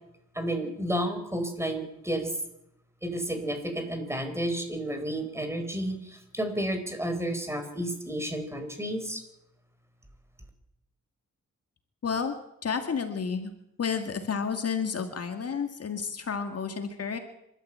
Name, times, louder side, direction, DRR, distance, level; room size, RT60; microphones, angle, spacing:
voice 1, 0.3-2.4 3.0-9.2, right 1 dB, 10° right, 6 dB, 4.3 m, -31 dB
voice 2, 12.0-12.3 12.6-13.5 13.8-17.2, left 6 dB, 50° left, 6 dB, 2.2 m, -31 dB
26.5 x 13.0 x 8.8 m, 0.81 s
wide cardioid pair, 140°, 31 cm